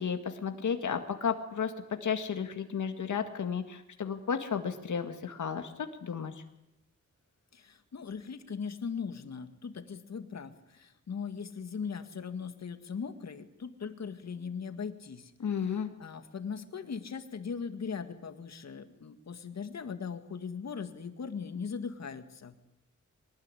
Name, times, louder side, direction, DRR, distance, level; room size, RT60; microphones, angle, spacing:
voice 1, 0.0-1.7 2.0-5.7 6.0-6.3 15.4-15.9, left 7 dB, 75° left, 6 dB, 1.9 m, -33 dB
voice 2, 7.5-22.6, left 6 dB, 60° left, 8 dB, 2.1 m, -39 dB
23.5 x 19.5 x 9.9 m, 0.84 s
wide cardioid pair, 170°, 30 cm